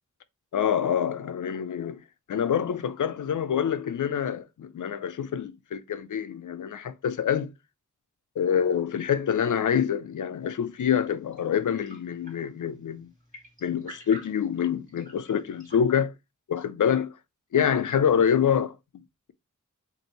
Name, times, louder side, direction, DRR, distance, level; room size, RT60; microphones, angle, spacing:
voice 1, 0.5-2.0 2.3-7.5 8.4-13.1 13.6-16.1 16.5-17.2 17.5-18.8, left 8 dB, 80° left, 0.6 m, -26 dB
sound 1, 10.4-15.8, right 1 dB, 25° right, 2.5 m, -51 dB
5.3 x 2.7 x 2.9 m
wide cardioid pair, 115°, 30 cm